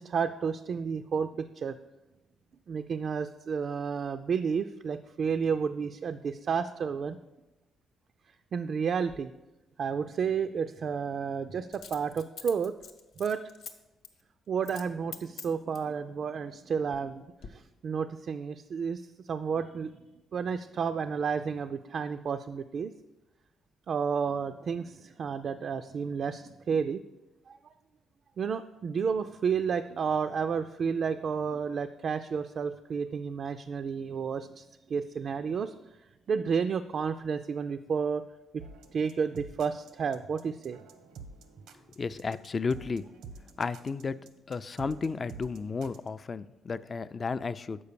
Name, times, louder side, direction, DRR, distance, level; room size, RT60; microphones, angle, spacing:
voice 1, 0.0-1.8 2.7-7.2 8.5-9.3 9.8-12.7 13.2-13.4 14.5-17.2 17.5-19.9 20.3-22.9 23.9-27.0 27.5-27.7 28.4-35.7 36.3-38.2 38.5-38.6 38.9-40.8, right 6 dB, 55° right, 8 dB, 0.3 m, -31 dB
Coin (dropping), 9.1-9.2 11.7-13.7 14.0-14.2 14.6-14.9 15.1-15.9 16.6-17.1 17.4-17.5, left 6 dB, 80° left, 0.8 m, -45 dB
sound 1, 38.6-46.1, right 4 dB, 90° right, 0.7 m, -49 dB
voice 2, 42.0-43.1 43.6-44.2 44.5-47.8, left 4 dB, 35° left, 15 dB, 0.3 m, -33 dB
6.9 x 5.1 x 6.7 m, 1.0 s
cardioid pair, 90°, 0 cm